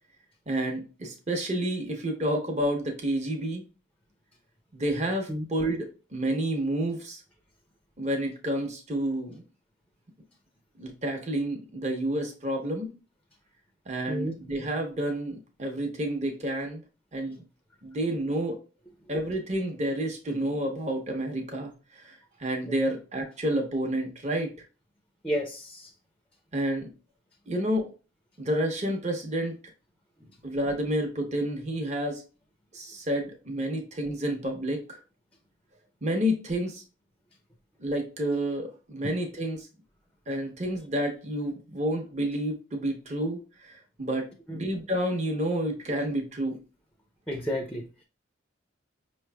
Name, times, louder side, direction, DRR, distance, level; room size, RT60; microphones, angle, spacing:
voice 1, 0.5-3.6 4.7-7.2 8.0-9.4 10.8-12.9 13.9-16.8 17.1-17.4 17.8-18.6 19.1-24.5 26.5-26.9 27.5-27.9 28.4-29.6 30.4-32.2 32.7-35.0 36.0-36.8 37.8-39.7 40.3-46.6, right 1 dB, 35° right, 2 dB, 0.9 m, -30 dB
voice 2, 25.2-25.9 44.5-44.6 47.3-48.0, equal, 5° left, 3 dB, 0.5 m, -32 dB
5.6 x 3.1 x 2.2 m, 0.32 s
head